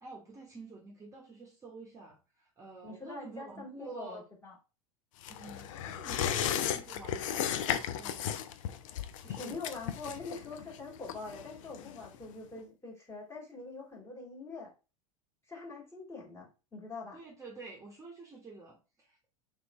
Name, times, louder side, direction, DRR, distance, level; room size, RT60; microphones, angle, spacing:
voice 1, 0.0-4.3 5.3-6.4 6.7-8.3 9.2-9.8 17.1-19.3, right 3 dB, 15° right, -2 dB, 1.0 m, -49 dB
voice 2, 2.8-4.5 9.4-14.7 15.5-17.2, left 3 dB, 15° left, -3 dB, 1.9 m, -44 dB
sound 1, 5.2-12.3 12.6-12.7, left 9 dB, 60° left, 0.5 m, -35 dB
3.3 x 3.0 x 3.1 m, 0.32 s
figure-of-eight pair, 90°, 19 cm